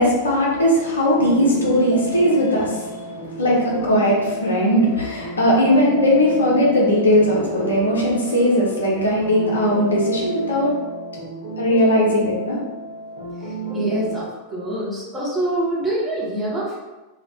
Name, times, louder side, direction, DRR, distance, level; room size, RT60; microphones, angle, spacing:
voice 1, 0.0-10.7 11.6-12.6, equal, 70° left, -4 dB, 0.6 m, -19 dB
sound 1, 0.5-14.2, right 2 dB, 60° right, 0.9 m, -31 dB
voice 2, 13.4-16.8, right 1 dB, 10° right, -7 dB, 1.0 m, -25 dB
2.3 x 2.2 x 2.6 m, 1.1 s
figure-of-eight pair, 90°, 0 cm